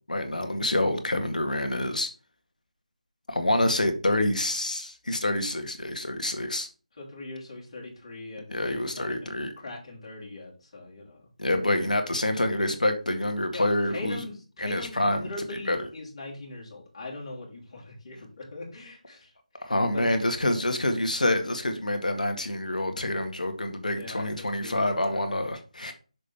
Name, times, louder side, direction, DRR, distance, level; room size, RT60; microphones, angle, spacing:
voice 1, 0.1-2.1 3.3-6.7 8.5-9.5 11.4-14.2 14.6-15.3 15.6-15.9 19.6-25.9, left 1 dB, 80° left, 1.8 m, -27 dB
voice 2, 7.0-11.3 13.5-20.1 23.9-25.4, left 2 dB, 45° left, 3.5 m, -41 dB
6.5 x 5.2 x 4.3 m
figure-of-eight pair, 160°, 4 cm